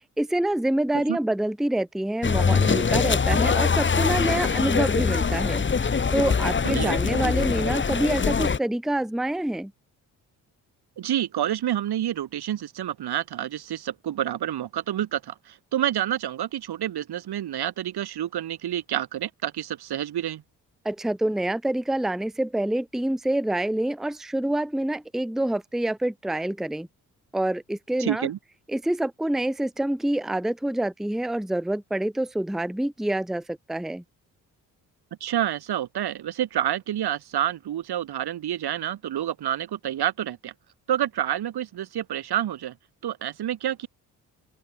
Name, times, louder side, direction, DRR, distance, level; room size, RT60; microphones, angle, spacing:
voice 1, 0.2-9.7 20.8-26.9 27.3-28.3 28.7-34.0, right 1 dB, ahead, 0.9 m, -26 dB
sound 1, 2.2-8.6, left 5 dB, 25° left, 1.1 m, -23 dB
voice 2, 11.0-20.4 28.0-28.4 35.2-40.5 40.9-42.7 43.0-43.9, right 11 dB, 55° right, 1.5 m, -28 dB
open air
hypercardioid pair, 40°, 46 cm